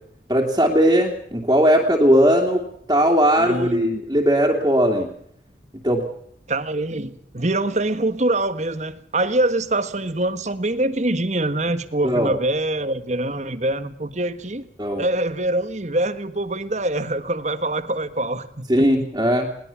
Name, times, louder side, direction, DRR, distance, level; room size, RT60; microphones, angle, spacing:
voice 1, 0.3-2.6 2.9-5.1 5.8-6.0 12.0-12.3 14.8-15.0 18.7-19.5, equal, 20° right, -2 dB, 2.8 m, -18 dB
voice 2, 3.4-4.0 6.5-14.7 15.0-18.5 18.7-18.8, right 1 dB, 40° right, 12 dB, 1.6 m, -24 dB
21.5 x 19.5 x 7.2 m, 0.67 s
head